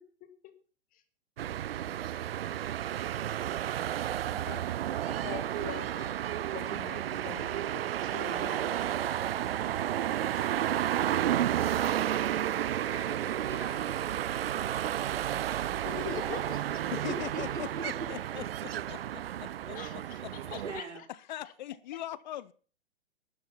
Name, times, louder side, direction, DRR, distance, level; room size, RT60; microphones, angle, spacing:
sound 1, 1.4-20.8, right 11 dB, 55° right, 0.5 m, -32 dB
voice 1, 4.3-4.6 5.1-6.2 6.5-9.6 10.6-10.8 15.8-16.8 19.7-21.1 21.4-21.5, left 11 dB, 25° left, 1.9 m, -44 dB
voice 2, 10.2-10.7 16.9-20.6 21.1-22.5, left 13 dB, 40° left, 0.6 m, -42 dB
voice 3, 12.8-14.1 16.0-16.1 16.9-18.1 20.6-21.0, right 3 dB, 85° right, 3.6 m, -41 dB
12.5 x 11.5 x 5.7 m
figure-of-eight pair, 115°, 34 cm